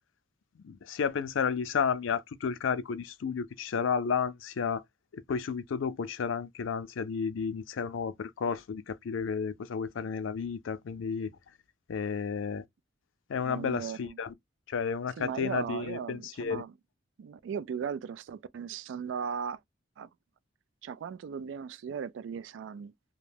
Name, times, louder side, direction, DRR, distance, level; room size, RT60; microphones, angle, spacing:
voice 1, 0.6-4.8 5.1-11.3 11.9-12.6 13.3-14.3 14.7-16.6, left 6 dB, 90° left, 0.4 m, -32 dB
voice 2, 13.4-14.2 15.2-16.7 17.2-19.6 20.0-20.1 20.8-22.9, right 7 dB, 70° right, 0.3 m, -37 dB
2.4 x 2.2 x 3.3 m
head